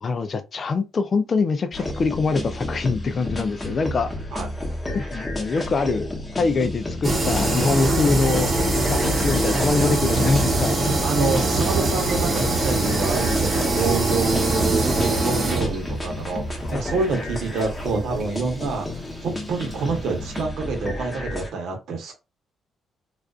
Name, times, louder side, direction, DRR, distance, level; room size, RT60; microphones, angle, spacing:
voice 1, 0.0-4.1 4.9-6.1 6.4-8.5 8.9-10.8 16.6-17.2, left 4 dB, 45° left, 0.3 m, -24 dB
sound 1, 1.7-21.5, left 1 dB, 20° left, 0.8 m, -32 dB
sound 2, 7.0-20.4, right 2 dB, 35° right, 0.9 m, -24 dB
voice 2, 10.8-22.1, right 4 dB, 75° right, 0.8 m, -27 dB
2.4 x 2.4 x 2.3 m
cardioid pair, 90°, 0 cm